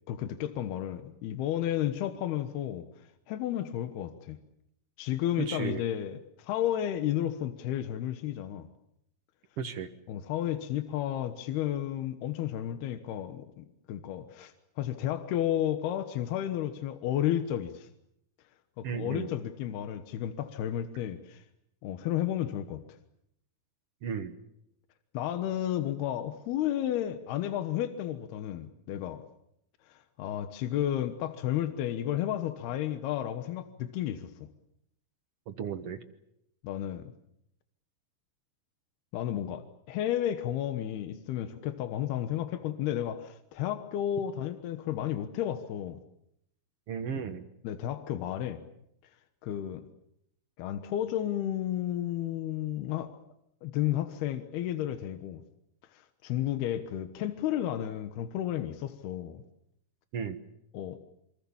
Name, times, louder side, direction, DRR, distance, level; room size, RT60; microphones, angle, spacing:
voice 1, 0.1-4.4 5.0-8.7 10.1-17.9 18.8-21.4 21.8-22.8 25.1-29.2 29.9-34.5 36.6-37.1 39.1-46.0 47.6-48.6 49.4-49.9 50.6-53.1 53.6-55.4 55.9-59.4 60.7-61.0, left 11 dB, 80° left, 9 dB, 3.2 m, -32 dB
voice 2, 5.4-5.8 9.6-9.9 18.8-19.3 24.0-24.3 35.5-36.0 46.9-47.5 60.1-60.4, right 7 dB, 65° right, 8 dB, 1.5 m, -34 dB
27.5 x 25.5 x 7.2 m, 0.78 s
omnidirectional pair, 4.5 m